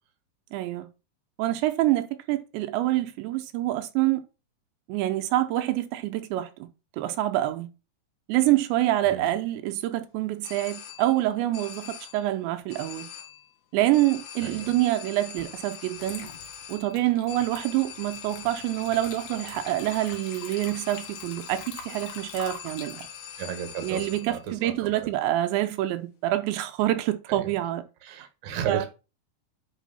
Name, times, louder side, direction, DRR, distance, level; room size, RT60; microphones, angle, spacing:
voice 1, 0.5-0.9 1.4-4.2 4.9-6.7 7.0-7.7 8.3-13.1 13.7-16.3 16.7-23.0 23.8-27.8 28.7-28.9, right 15 dB, 80° right, 2.9 m, -26 dB
sound 1, 10.4-11.3 11.5-12.3 12.7-13.5 13.9-24.5, left 8 dB, 80° left, 1.7 m, -43 dB
voice 2, 14.4-14.8 23.4-25.1 27.3-27.5 28.0-28.8, right 8 dB, 55° right, 2.2 m, -34 dB
Water / Liquid, 15.4-15.5 16.0-24.5, left 6 dB, 60° left, 3.0 m, -45 dB
9.1 x 5.0 x 4.1 m
omnidirectional pair, 5.2 m